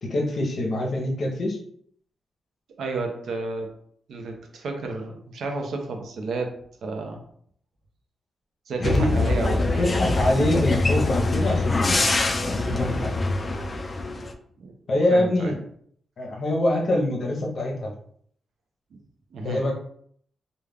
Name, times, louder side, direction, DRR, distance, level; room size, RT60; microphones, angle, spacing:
voice 1, 0.0-1.6 8.8-9.1 9.8-12.2 12.6-13.2 14.9-15.6 16.2-17.9 19.4-19.7, left 1 dB, 55° left, 0 dB, 0.7 m, -24 dB
voice 2, 2.8-3.7 4.1-7.2 8.7-10.0 10.3-10.4 14.0-14.2 14.6-14.7 15.1-15.5 18.9-19.0 19.3-19.6, right 3 dB, 75° right, 3 dB, 0.6 m, -31 dB
sound 1, 8.8-14.3, left 2 dB, 30° left, 0.3 m, -24 dB
2.3 x 2.2 x 3.3 m, 0.62 s
cardioid pair, 105°, 0 cm